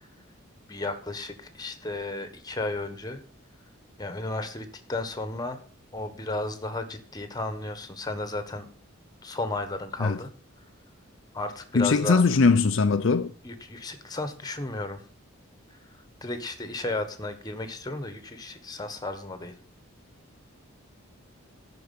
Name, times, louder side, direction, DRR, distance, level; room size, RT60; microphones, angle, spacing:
voice 1, 0.7-3.2 4.0-5.6 5.9-8.7 9.2-10.3 11.3-12.2 13.4-15.0 16.2-19.5, left 2 dB, 20° left, 1.3 m, -33 dB
voice 2, 11.7-13.3, left 4 dB, 65° left, 0.6 m, -21 dB
11.0 x 4.8 x 8.2 m
head